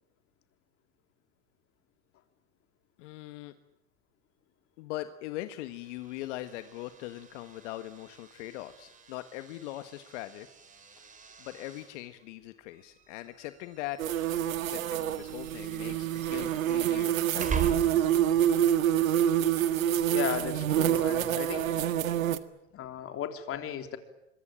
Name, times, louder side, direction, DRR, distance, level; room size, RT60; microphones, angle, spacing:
voice 1, 3.0-3.5 4.8-10.5 11.4-14.0 14.6-17.6, left 15 dB, 60° left, 10 dB, 1.7 m, -41 dB
sound 1, 5.6-18.4, right 7 dB, 20° right, 4.1 m, -42 dB
sound 2, 14.0-22.4, right 10 dB, 90° right, 1.7 m, -27 dB
voice 2, 20.1-21.8 22.7-24.0, left 9 dB, 35° left, 7 dB, 3.5 m, -35 dB
26.0 x 23.5 x 9.0 m, 0.86 s
hypercardioid pair, 120°, 39 cm